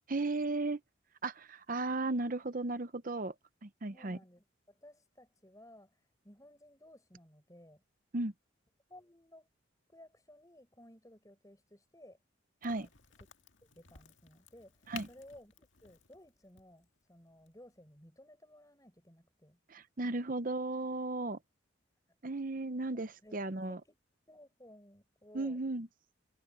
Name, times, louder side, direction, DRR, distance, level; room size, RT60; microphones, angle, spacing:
voice 1, 0.1-0.8 1.2-3.3 3.6-4.2 8.1-8.3 12.6-12.9 14.9-15.1 19.7-21.4 22.2-23.8 25.3-25.9, right 2 dB, 40° right, 0.7 m, -35 dB
voice 2, 3.9-7.8 8.9-9.5 9.9-12.2 12.7-12.9 13.6-19.6 23.2-23.4 23.7-23.8 24.3-25.6, left 1 dB, 15° left, 7.3 m, -57 dB
Crack, 12.6-18.1, left 7 dB, 70° left, 2.0 m, -55 dB
head